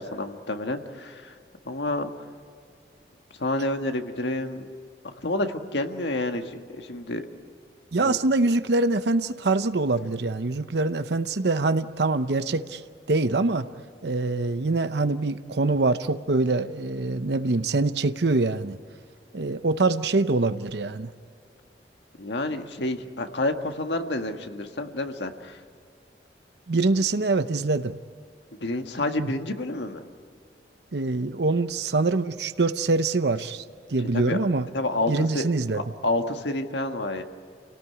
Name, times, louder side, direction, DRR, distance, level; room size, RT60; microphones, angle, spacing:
voice 1, 0.0-1.3 1.7-2.1 3.4-4.7 5.0-7.2 8.0-8.1 22.2-25.6 28.6-30.1 34.1-34.4 34.7-35.5 35.7-37.2, left 2 dB, 85° left, 6 dB, 1.7 m, -29 dB
voice 2, 7.9-12.8 13.1-13.7 14.0-18.8 19.3-21.1 26.7-27.9 29.2-29.3 30.9-34.7 35.1-35.8, right 3 dB, 75° right, 11 dB, 0.7 m, -24 dB
28.5 x 18.0 x 9.8 m, 2.2 s
head